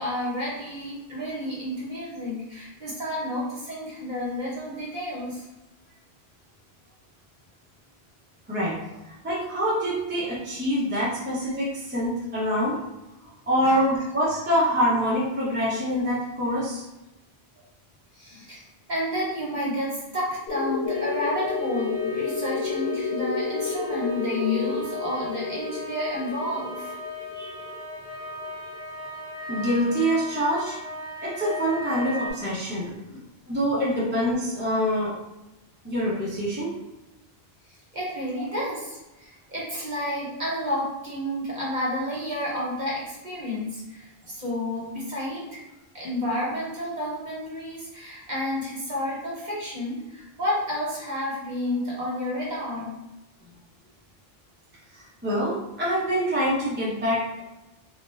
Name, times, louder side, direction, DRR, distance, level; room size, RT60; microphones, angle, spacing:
voice 1, 0.0-5.5 13.6-13.8 18.1-18.6 18.9-26.9 32.9-33.2 33.8-33.9 37.9-45.6 45.9-52.9, left 1 dB, 50° right, -6 dB, 0.9 m, -30 dB
voice 2, 9.2-12.8 13.5-16.8 27.3-27.5 29.5-30.8 31.2-32.9 33.5-35.1 35.8-36.8 54.9-57.4, equal, 15° right, -7 dB, 0.5 m, -25 dB
sound 1, 20.5-28.8, left 4 dB, 85° left, 0.8 m, -31 dB
sound 2, 20.9-32.3, left 2 dB, 35° left, 0.8 m, -37 dB
2.3 x 2.1 x 3.1 m, 0.99 s
omnidirectional pair, 1.1 m